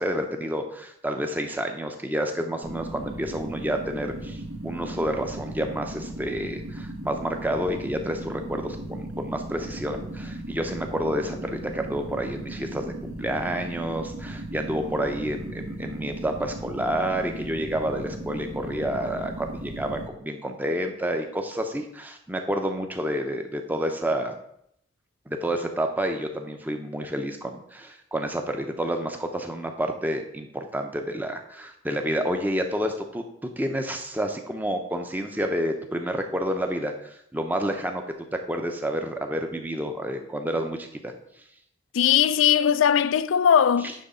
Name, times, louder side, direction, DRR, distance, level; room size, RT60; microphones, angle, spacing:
voice 1, 0.0-24.3 25.3-33.2 33.6-38.0 38.5-41.1 43.8-43.9, equal, 10° right, 0.7 m, -29 dB
sound 1, 2.6-20.1, right 1 dB, 75° right, 1.1 m, -37 dB
voice 2, 41.9-43.9, left 8 dB, 75° left, 0.4 m, -19 dB
10.0 x 3.4 x 5.5 m
head